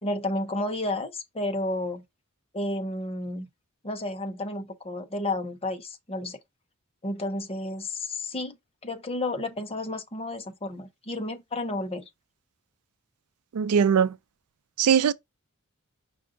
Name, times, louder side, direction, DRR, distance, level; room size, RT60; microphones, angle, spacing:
voice 1, 0.0-2.0 2.5-3.5 3.8-6.4 7.0-8.6 8.8-12.0, left 2 dB, 25° left, 0.8 m, -31 dB
voice 2, 13.5-14.1 14.8-15.1, right 7 dB, 90° right, 0.4 m, -20 dB
5.3 x 2.5 x 3.8 m
head